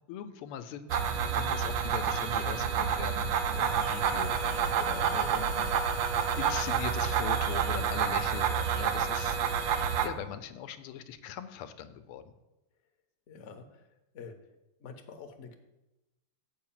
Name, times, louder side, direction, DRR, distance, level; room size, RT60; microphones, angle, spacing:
voice 1, 0.1-4.4 4.8-12.3, left 9 dB, 85° left, 10 dB, 1.5 m, -41 dB
sound 1, 0.9-10.1, right 7 dB, 70° right, 1.3 m, -29 dB
voice 2, 13.3-13.8 14.1-14.3 14.8-15.5, left 5 dB, 55° left, 5 dB, 0.8 m, -46 dB
7.7 x 4.8 x 7.3 m, 0.98 s
omnidirectional pair, 2.4 m